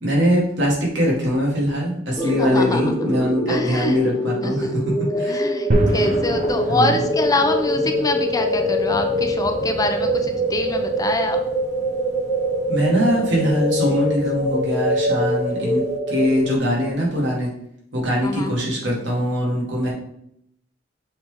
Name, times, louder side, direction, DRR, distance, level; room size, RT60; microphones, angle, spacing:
voice 1, 0.0-4.8 5.2-5.5 6.7-7.1 7.8-7.9 12.7-17.5 17.9-19.9, equal, 75° right, -4 dB, 2.5 m, -22 dB
voice 2, 2.2-3.1 3.5-4.0 4.4-4.8 5.1-11.4 18.2-18.5, left 2 dB, 20° left, 6 dB, 0.5 m, -25 dB
sound 1, 2.2-16.9, equal, ahead, 1.5 m, -24 dB
sound 2, 5.7-16.0, equal, 40° right, 1.1 m, -31 dB
7.0 x 4.1 x 3.7 m, 0.73 s
head